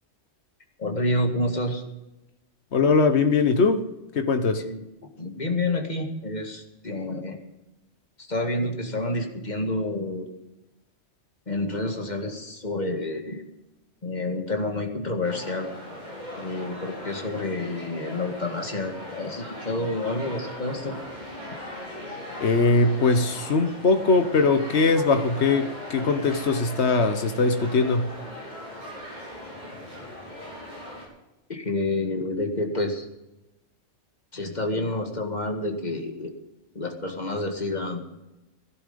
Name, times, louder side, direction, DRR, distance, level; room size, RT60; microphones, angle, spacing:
voice 1, 0.8-1.8 4.6-7.4 8.2-10.3 11.5-13.4 14.0-15.7 16.4-21.0 31.5-33.1 34.3-36.3 36.8-38.0, left 2 dB, 35° left, 2.0 m, -29 dB
voice 2, 2.7-3.8 4.1-4.6 22.4-28.1, left 3 dB, 65° left, 1.4 m, -21 dB
sound 1, 15.2-31.0, left 1 dB, 35° right, 5.1 m, -39 dB
17.0 x 11.5 x 5.3 m
omnidirectional pair, 1.2 m